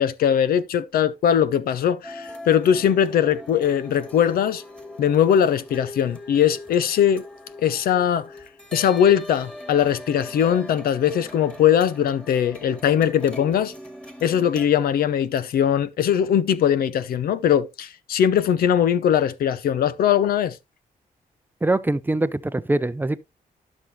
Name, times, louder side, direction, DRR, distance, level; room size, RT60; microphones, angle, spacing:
voice 1, 0.0-4.6 5.0-7.2 7.6-8.3 8.7-13.7 14.2-20.6, left 9 dB, 90° left, 0.7 m, -20 dB
sound 1, 2.0-14.7, left 1 dB, 5° left, 1.8 m, -41 dB
voice 2, 21.6-23.2, right 2 dB, 15° right, 0.5 m, -23 dB
12.0 x 6.3 x 2.7 m
cardioid pair, 110°, 15 cm